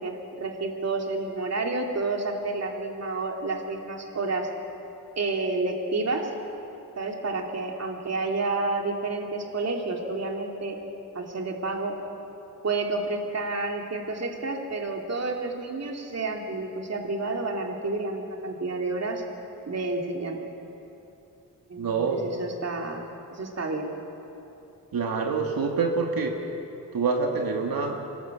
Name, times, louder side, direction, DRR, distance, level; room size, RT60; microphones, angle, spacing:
voice 1, 0.0-4.5 5.2-6.3 7.0-10.8 11.1-12.0 12.6-19.2 19.7-20.4 21.7-23.9, right 3 dB, 45° right, 2 dB, 2.7 m, -30 dB
voice 2, 21.8-22.2 24.9-26.3 26.9-28.1, right 4 dB, 85° right, 1 dB, 2.2 m, -26 dB
26.0 x 19.5 x 8.2 m, 2.9 s
wide cardioid pair, 110°, 35 cm